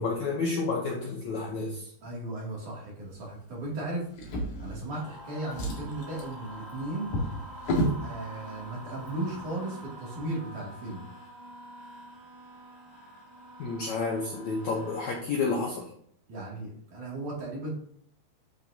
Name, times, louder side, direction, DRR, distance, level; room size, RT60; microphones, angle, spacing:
voice 1, 0.0-1.9 13.6-15.9, left 4 dB, 90° left, -1 dB, 1.6 m, -30 dB
voice 2, 2.0-4.0 4.6-7.1 8.0-11.0 16.3-17.7, right 2 dB, 50° right, -5 dB, 3.9 m, -36 dB
Drawer open or close, 4.1-5.1 5.4-8.1 8.9-9.1 9.5-9.6, equal, 55° left, 2.7 m, -32 dB
sound 1, 4.9-15.1, right 1 dB, 30° right, 3.3 m, -46 dB
11.0 x 6.4 x 2.9 m, 0.63 s
omnidirectional pair, 5.0 m